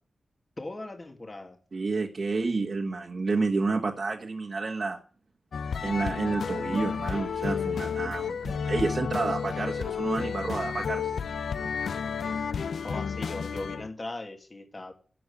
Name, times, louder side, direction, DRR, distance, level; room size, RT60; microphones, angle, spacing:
voice 1, 0.6-1.6 12.8-14.9, left 2 dB, 35° left, 2.3 m, -39 dB
voice 2, 1.7-5.0 5.8-11.1, right 3 dB, 55° right, 1.6 m, -30 dB
sound 1, 5.5-13.9, left 6 dB, 90° left, 0.6 m, -31 dB
12.5 x 7.5 x 8.5 m
wide cardioid pair, 95°, 0 cm